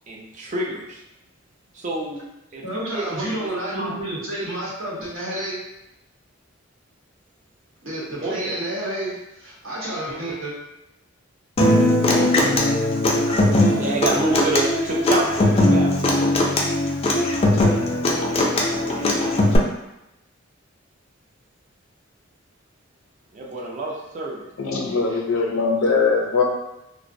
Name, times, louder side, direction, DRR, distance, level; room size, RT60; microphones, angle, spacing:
voice 1, 0.1-1.0 1.7-2.2 2.5-4.0 8.2-8.5 13.8-16.2 18.6-19.4 23.3-24.5, right 2 dB, 40° right, -2 dB, 0.4 m, -28 dB
voice 2, 2.6-5.6 7.8-10.5, right 1 dB, 75° right, -6 dB, 0.9 m, -30 dB
Human voice / Acoustic guitar, 11.6-19.6, left 1 dB, 30° left, 0.3 m, -19 dB
voice 3, 24.6-26.4, left 4 dB, 85° left, 0 dB, 0.5 m, -21 dB
2.4 x 2.0 x 2.6 m, 0.91 s
head